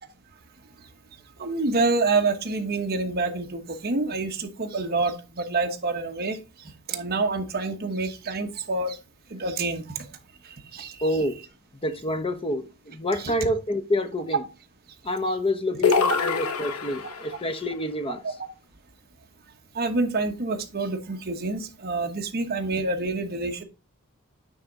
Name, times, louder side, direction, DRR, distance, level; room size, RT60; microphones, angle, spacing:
voice 1, 1.4-6.4 6.9-9.0 9.3-9.8 10.7-11.1 13.2-13.3 18.2-18.3 19.7-23.6, right 3 dB, 45° right, 1.1 m, -27 dB
voice 2, 11.0-11.4 11.8-14.4 15.0-18.2, left 1 dB, 25° left, 0.8 m, -27 dB
sound 1, 15.8-17.4, left 5 dB, 80° left, 1.0 m, -24 dB
9.3 x 3.5 x 3.9 m
head